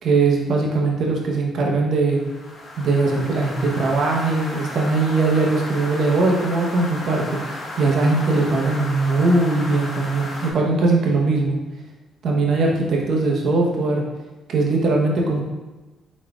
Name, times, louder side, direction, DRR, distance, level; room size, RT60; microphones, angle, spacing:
voice 1, 0.0-2.2 2.8-7.4 7.8-11.6 12.2-14.0 14.5-15.4, right 3 dB, 65° right, -1 dB, 0.9 m, -20 dB
sound 1, 2.1-10.5, left 1 dB, 50° left, 1.1 m, -34 dB
4.9 x 4.1 x 2.3 m, 1.2 s
cardioid pair, 90°, 0 cm